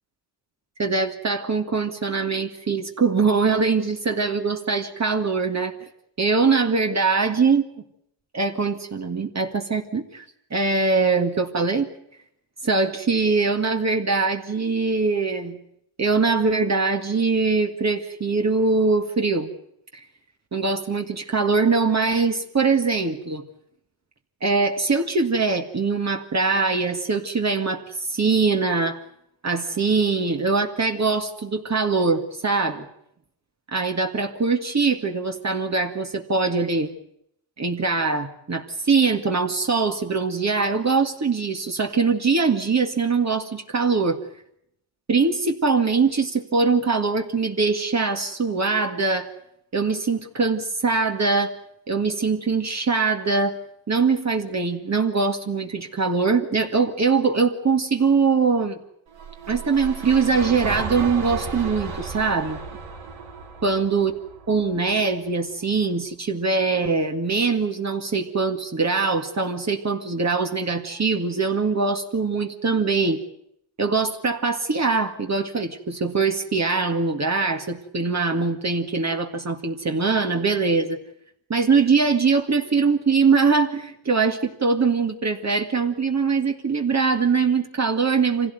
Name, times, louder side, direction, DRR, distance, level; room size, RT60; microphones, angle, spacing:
voice 1, 0.8-5.7 6.2-7.6 8.3-10.2 10.5-11.9 12.6-15.6 16.0-19.5 19.9-20.0 20.5-23.4 24.4-29.0 29.4-32.9 33.7-36.9 37.6-44.2 45.1-49.3 49.7-51.6 51.9-53.6 53.9-58.8 59.5-62.6 63.6-64.1 64.5-73.2 73.8-81.0 81.5-88.5, right 4 dB, 35° right, 4 dB, 2.0 m, -22 dB
sound 1, 59.1-65.3, right 5 dB, 90° right, 4.8 m, -34 dB
25.0 x 16.5 x 9.3 m, 0.75 s
cardioid pair, 80°, 46 cm